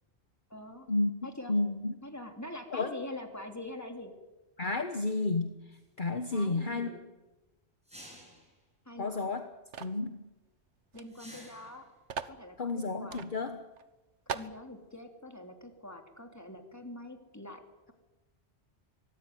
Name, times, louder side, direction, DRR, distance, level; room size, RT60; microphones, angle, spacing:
voice 1, 0.5-0.9 1.2-1.5 2.0-4.1 6.3-7.0 8.9-9.3 10.9-11.8 12.3-13.2 14.3-17.6, left 1 dB, 15° left, 4 dB, 3.1 m, -44 dB
voice 2, 1.5-2.0 2.7-2.9 4.6-6.9 9.0-9.4 9.8-10.2 12.6-13.6, left 3 dB, 45° left, 7 dB, 1.4 m, -31 dB
sound 1, 5.7-5.8 7.9-8.5 11.1-11.9, equal, 5° right, 7.3 m, -51 dB
sound 2, 9.7-10.0 10.9-11.1 11.3-11.4 12.1-12.4 13.1-13.3 13.8-13.9 14.3-14.6, right 7 dB, 90° right, 1.4 m, -38 dB
24.0 x 18.5 x 9.4 m, 1.1 s
omnidirectional pair, 1.2 m